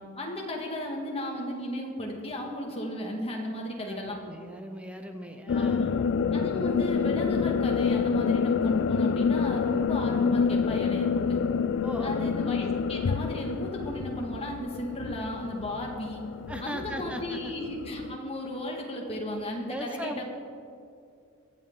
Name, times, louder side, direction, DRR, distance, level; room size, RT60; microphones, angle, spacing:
voice 1, 0.2-4.2 5.5-5.8 6.3-11.4 12.0-16.2 16.6-20.2, left 1 dB, 25° left, 0 dB, 1.8 m, -34 dB
voice 2, 3.8-6.0 11.8-12.4 16.5-17.5 19.6-20.2, equal, 5° right, 5 dB, 0.6 m, -38 dB
sound 1, 5.5-18.2, left 6 dB, 55° left, 0.3 m, -28 dB
22.5 x 7.5 x 3.9 m, 2.5 s
head